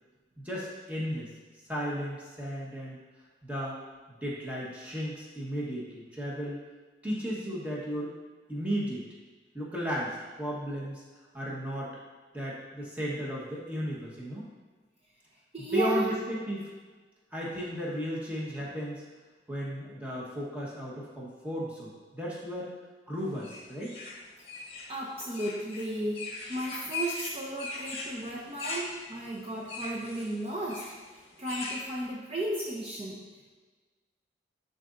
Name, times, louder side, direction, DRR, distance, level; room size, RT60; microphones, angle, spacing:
voice 1, 0.4-1.3 1.7-3.0 3.4-3.8 4.2-6.6 7.0-8.1 8.5-9.1 9.5-11.0 11.3-12.0 12.3-14.5 15.7-16.7 17.3-19.0 19.5-22.7 23.1-23.9, equal, 10° right, -6 dB, 1.2 m, -34 dB
voice 2, 15.5-16.1 24.9-26.2 26.5-30.9 31.4-33.2, right 1 dB, 35° right, -4 dB, 0.7 m, -34 dB
sound 1, 23.4-31.8, left 3 dB, 35° left, 1.0 m, -40 dB
11.0 x 4.0 x 2.6 m, 1.4 s
head